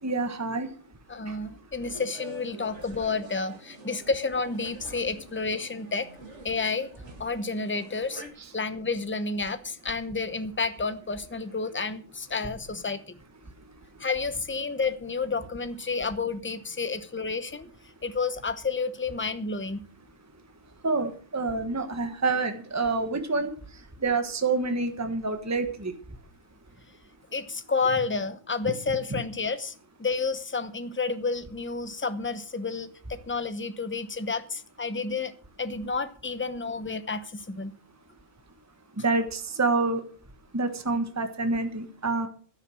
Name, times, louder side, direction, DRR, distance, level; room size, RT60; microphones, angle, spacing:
voice 1, 0.0-1.0 1.2-1.7 8.4-8.5 13.4-14.1 20.2-20.4 20.8-26.2 29.1-29.2 38.9-40.0 40.5-42.3, right 3 dB, 15° right, 1.3 m, -28 dB
voice 2, 1.1-6.1 6.4-6.9 7.2-8.2 8.5-13.2 14.0-17.7 18.0-19.8 27.3-29.7 30.0-35.3 35.6-37.7, left 4 dB, 10° left, 0.7 m, -30 dB
sound 1, 1.8-8.3, right 2 dB, 60° right, 2.6 m, -47 dB
12.5 x 10.5 x 6.3 m
omnidirectional pair, 1.4 m